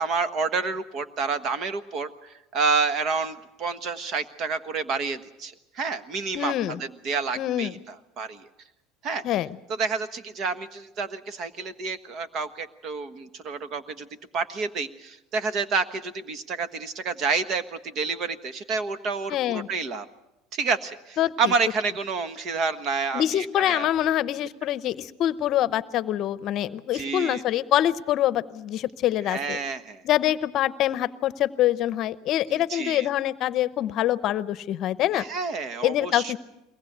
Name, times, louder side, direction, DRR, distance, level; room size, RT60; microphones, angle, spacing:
voice 1, 0.0-6.5 6.8-8.5 9.0-9.2 9.7-14.1 14.3-20.1 20.5-23.9 26.9-27.4 29.3-30.0 32.5-33.1 35.1-36.4, right 4 dB, 45° right, 11 dB, 1.4 m, -29 dB
voice 2, 6.3-6.8 7.4-7.7 9.2-9.6 19.3-19.7 21.2-21.5 23.1-29.6 30.0-35.2 35.8-36.4, left 12 dB, 50° left, 16 dB, 0.8 m, -25 dB
22.5 x 19.0 x 8.1 m, 0.93 s
supercardioid pair, 130°, 0 cm